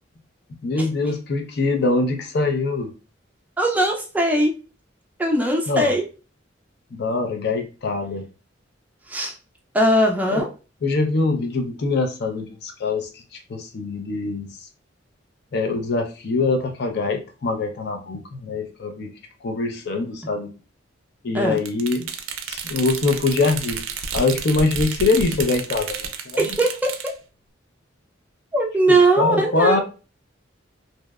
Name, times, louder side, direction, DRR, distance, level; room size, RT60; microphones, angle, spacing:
voice 1, 0.6-2.9 5.7-5.9 6.9-8.3 10.3-10.4 10.8-14.7 15.5-20.5 21.2-22.1 22.5-23.8 24.1-26.6 28.9-29.8, left 3 dB, 55° left, 0.4 m, -23 dB
voice 2, 3.6-4.5 5.2-6.0 9.1-9.3 9.7-10.5 21.3-21.6 26.4-27.1 28.5-29.8, right 1 dB, 10° right, 0.3 m, -20 dB
sound 1, 21.6-27.1, right 5 dB, 90° right, 0.4 m, -31 dB
2.7 x 2.0 x 2.2 m
head